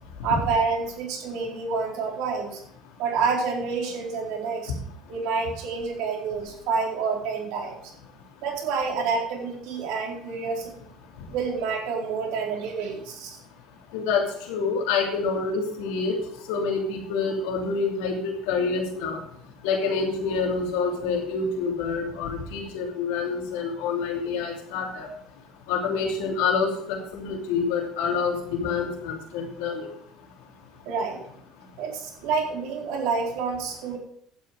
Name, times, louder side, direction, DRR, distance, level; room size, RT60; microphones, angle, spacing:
voice 1, 0.2-2.6 3.0-4.7 5.1-7.8 8.4-10.8 11.3-13.4 30.9-31.2 31.8-34.0, right 5 dB, 80° right, -1 dB, 4.2 m, -28 dB
voice 2, 13.9-16.2 16.5-19.2 19.6-25.1 25.7-29.9, left 5 dB, 90° left, -1 dB, 2.8 m, -27 dB
11.5 x 8.3 x 5.2 m, 0.66 s
cardioid pair, 115°, 0 cm